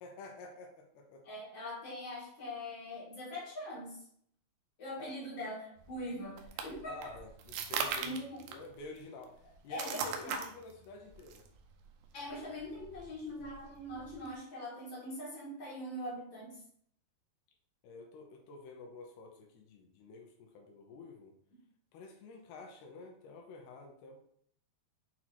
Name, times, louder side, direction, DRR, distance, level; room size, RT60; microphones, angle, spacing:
voice 1, 0.0-1.3 5.0-5.2 6.9-11.4 17.8-21.3 21.9-24.2, left 3 dB, 90° left, 2 dB, 2.8 m, -50 dB
voice 2, 1.2-4.0 4.8-7.1 8.0-8.4 9.7-10.4 12.1-16.6, left 1 dB, 45° left, -6 dB, 1.8 m, -42 dB
sound 1, 5.8-14.4, right 6 dB, 85° right, 1.8 m, -42 dB
7.4 x 3.0 x 4.2 m, 0.66 s
omnidirectional pair, 4.5 m